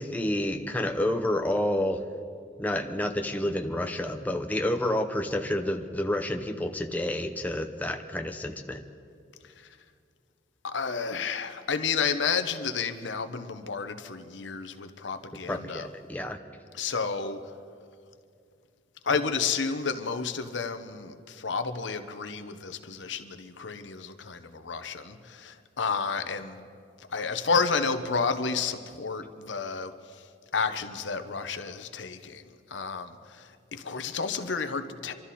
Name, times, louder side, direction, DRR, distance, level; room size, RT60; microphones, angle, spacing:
voice 1, 0.0-2.0 2.6-8.8 15.5-16.4, left 1 dB, 10° left, 4 dB, 0.7 m, -29 dB
voice 2, 10.6-15.9 16.7-17.4 19.0-26.7 27.0-30.3 30.5-35.1, left 5 dB, 80° left, 9 dB, 0.9 m, -31 dB
25.5 x 13.0 x 4.2 m, 2.3 s
head